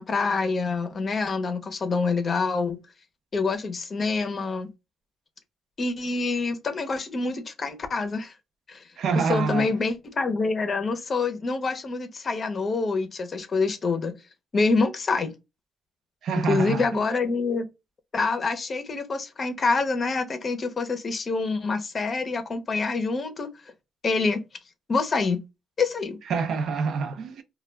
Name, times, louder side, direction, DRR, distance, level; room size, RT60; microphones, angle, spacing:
voice 1, 0.0-2.8 3.3-4.7 5.8-8.3 8.7-8.8 9.1-14.1 14.5-15.3 16.4-17.7 18.1-23.5 24.0-24.4 24.9-25.4 25.8-26.2, left 4 dB, 40° left, 0.6 m, -26 dB
voice 2, 9.0-9.7 16.2-16.9 26.3-27.4, right 5 dB, 70° right, 0.4 m, -26 dB
2.2 x 2.2 x 3.2 m
cardioid pair, 90°, 0 cm